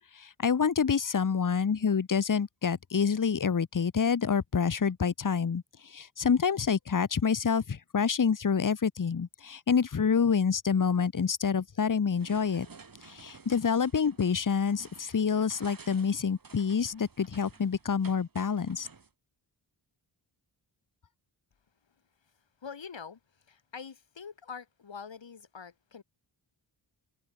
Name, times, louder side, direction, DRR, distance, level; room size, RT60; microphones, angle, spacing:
voice 1, 0.1-12.7 13.0-18.9, left 6 dB, 40° left, 1.4 m, -27 dB
sound 1, 12.1-19.1, right 4 dB, 45° right, 7.3 m, -53 dB
voice 2, 22.2-26.0, left 6 dB, 70° left, 7.2 m, -45 dB
open air
wide cardioid pair, 140°, 47 cm